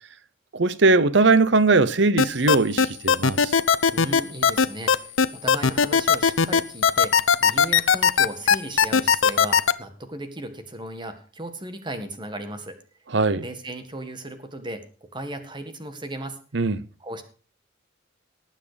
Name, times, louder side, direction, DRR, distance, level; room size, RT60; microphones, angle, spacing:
voice 1, 0.5-3.6 13.1-13.4 16.5-16.8, right 3 dB, 60° right, 0.8 m, -20 dB
sound 1, 2.2-9.7, left 6 dB, 80° left, 0.7 m, -17 dB
voice 2, 3.9-12.8 13.4-16.4 17.0-17.2, right 1 dB, 25° right, 1.8 m, -36 dB
19.0 x 7.6 x 5.1 m
head